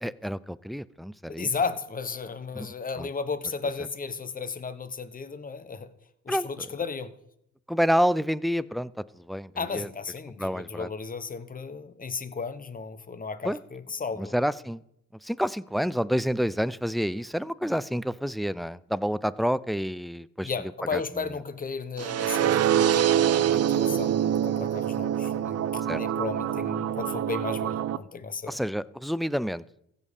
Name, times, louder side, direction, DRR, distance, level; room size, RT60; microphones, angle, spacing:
voice 1, 0.0-1.5 2.5-2.7 3.0-3.1 6.3-6.5 7.7-9.9 10.4-10.9 13.4-13.6 14.2-14.8 15.2-20.5 20.9-21.0 25.9-26.0 28.5-29.6, equal, ahead, 18 dB, 0.3 m, -28 dB
voice 2, 1.3-5.9 6.2-7.1 9.6-14.4 20.4-28.6, left 5 dB, 30° left, 11 dB, 1.0 m, -34 dB
sound 1, 22.0-28.0, right 10 dB, 55° right, 0.6 m, -25 dB
15.5 x 5.4 x 6.4 m, 0.78 s
cardioid pair, 90°, 30 cm